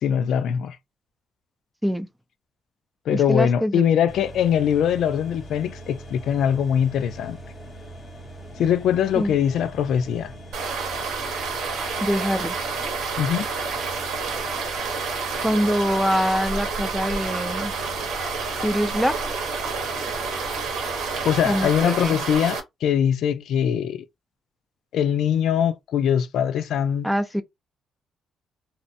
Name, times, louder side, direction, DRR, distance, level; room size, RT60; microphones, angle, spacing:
voice 1, 0.0-0.8 3.1-7.4 8.6-10.3 13.2-13.5 21.2-24.0 24.9-27.1, left 9 dB, 75° left, 0.3 m, -22 dB
voice 2, 3.1-3.8 9.2-9.3 12.0-12.6 15.4-17.7 18.6-19.2 21.4-22.2 27.0-27.4, equal, ahead, 0.4 m, -24 dB
sound 1, 4.1-21.8, right 1 dB, 35° left, 0.9 m, -42 dB
sound 2, 10.5-22.6, right 4 dB, 85° right, 0.9 m, -29 dB
2.7 x 2.1 x 2.5 m
cardioid pair, 90°, 0 cm